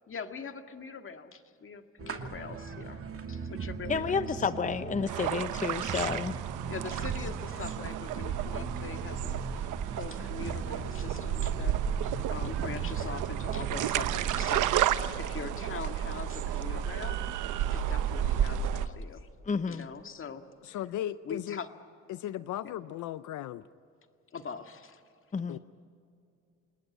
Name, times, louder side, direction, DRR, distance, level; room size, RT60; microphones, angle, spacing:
voice 1, 0.1-3.0 3.3-4.5 6.7-11.8 12.3-17.2 17.7-19.3 19.7-20.4 21.2-21.7 22.6-22.7 24.3-25.0, left 5 dB, 45° left, 7 dB, 1.8 m, -42 dB
sound 1, 2.0-14.8, right 5 dB, 50° right, 2.6 m, -40 dB
voice 2, 3.9-6.3 19.5-19.9 25.3-25.6, left 5 dB, 25° left, 12 dB, 0.8 m, -30 dB
sound 2, 5.1-18.9, right 10 dB, 90° right, 1.0 m, -32 dB
voice 3, 20.6-21.6 22.1-23.7 25.5-25.6, left 12 dB, 80° left, 15 dB, 0.6 m, -36 dB
28.5 x 19.5 x 9.4 m, 2.5 s
cardioid pair, 90°, 30 cm